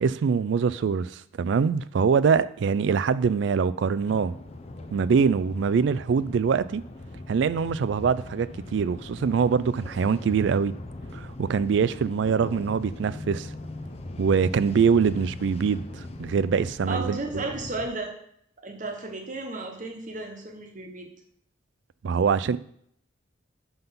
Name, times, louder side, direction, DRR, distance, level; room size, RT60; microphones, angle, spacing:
voice 1, 0.0-4.3 4.9-6.8 7.3-10.7 11.1-13.5 14.2-17.5 22.0-22.6, right 6 dB, 65° right, 0.3 m, -24 dB
sound 1, 4.0-17.9, left 2 dB, 35° left, 0.5 m, -40 dB
voice 2, 16.8-18.1 18.6-21.1, right 3 dB, 40° right, 1.1 m, -33 dB
5.7 x 5.3 x 5.7 m
head